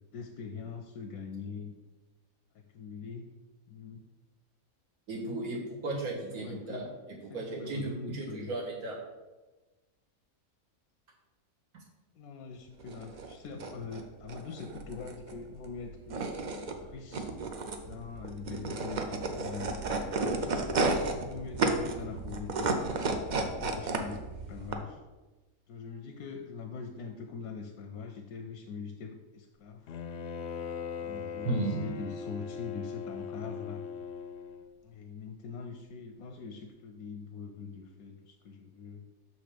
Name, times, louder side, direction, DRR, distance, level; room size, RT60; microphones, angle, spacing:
voice 1, 0.1-1.7 2.5-3.4 3.7-4.0 6.3-6.9 7.3-8.5 12.2-16.3 16.8-17.3 17.9-20.4 20.7-22.7 23.3-24.2 24.5-25.0 25.7-29.9 31.0-33.8 34.8-39.1, left 5 dB, 85° left, 3 dB, 1.1 m, -43 dB
voice 2, 5.1-6.9 7.2-9.0 31.4-31.8, right 2 dB, 75° right, -2 dB, 2.1 m, -34 dB
sound 1, 12.8-24.7, right 3 dB, 60° right, 0.5 m, -33 dB
Bowed string instrument, 29.9-34.7, left 6 dB, 65° left, 0.7 m, -40 dB
6.4 x 4.2 x 5.0 m, 1.2 s
omnidirectional pair, 1.5 m